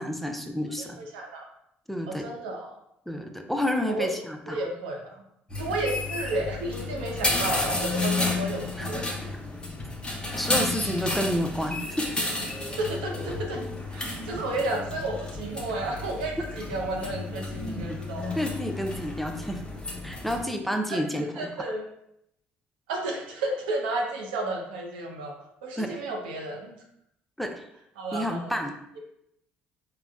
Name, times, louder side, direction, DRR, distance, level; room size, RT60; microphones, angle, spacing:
voice 1, 0.0-1.0 1.9-2.3 3.1-4.6 8.8-8.9 10.4-12.1 18.4-19.6 20.0-21.5 25.8-26.0 27.4-27.6 28.1-28.7, equal, 5° left, 4 dB, 0.4 m, -30 dB
voice 2, 0.8-1.4 2.1-2.8 3.9-4.2 4.5-5.2 5.6-9.0 12.8-13.6 13.9-18.3 20.9-21.8 22.9-25.3 25.6-26.8 28.0-28.5, right 2 dB, 90° right, 0 dB, 0.5 m, -32 dB
sound 1, 5.5-20.4, left 2 dB, 20° left, 0.8 m, -32 dB
3.7 x 2.1 x 2.3 m, 0.77 s
hypercardioid pair, 60°, 5 cm